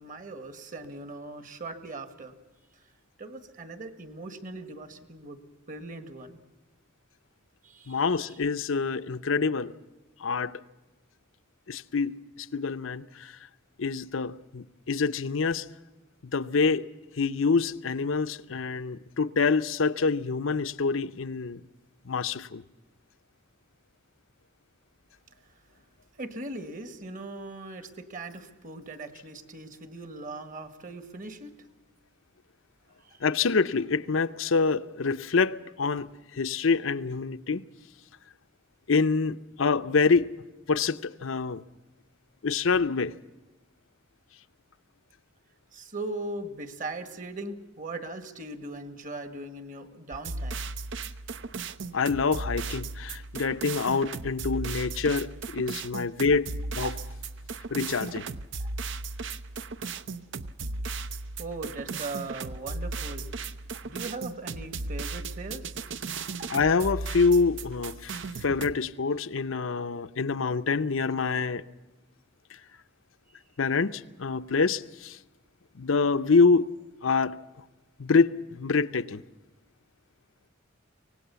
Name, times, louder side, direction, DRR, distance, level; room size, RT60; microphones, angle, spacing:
voice 1, 0.0-2.4 3.2-5.4 5.7-6.4 7.6-8.4 26.2-31.5 45.7-50.6 56.8-56.9 58.6-58.7 61.4-63.2 63.8-65.8 66.4-66.5, right 2 dB, 40° right, 1.7 m, -39 dB
voice 2, 7.9-9.7 10.2-10.6 11.7-13.4 13.8-15.7 16.3-16.9 17.2-21.6 22.1-22.6 33.2-37.6 38.9-40.3 40.7-41.6 42.4-43.1 51.9-56.9 57.7-58.3 66.5-71.6 73.6-75.2 75.7-76.7 77.0-77.4 78.0-79.2, left 4 dB, 70° left, 0.7 m, -26 dB
sound 1, 50.1-68.7, right 3 dB, 60° right, 0.7 m, -36 dB
24.5 x 18.5 x 7.0 m
head